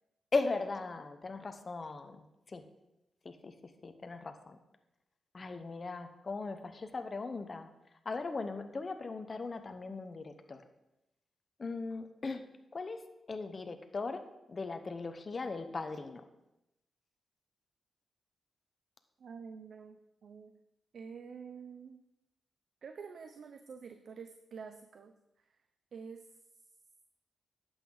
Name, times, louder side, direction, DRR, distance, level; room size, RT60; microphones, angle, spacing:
voice 1, 0.3-2.2 2.5-2.6 3.2-3.5 3.8-4.6 5.3-7.7 8.0-10.6 11.6-12.5 12.7-13.0 13.3-14.2 14.5-16.2, left 3 dB, 45° left, 8 dB, 1.1 m, -38 dB
voice 2, 19.2-20.6 20.9-22.0 22.8-25.2 25.9-26.3, right 6 dB, 70° right, 8 dB, 0.6 m, -48 dB
11.5 x 8.1 x 4.0 m, 0.91 s
cardioid pair, 65°, 0 cm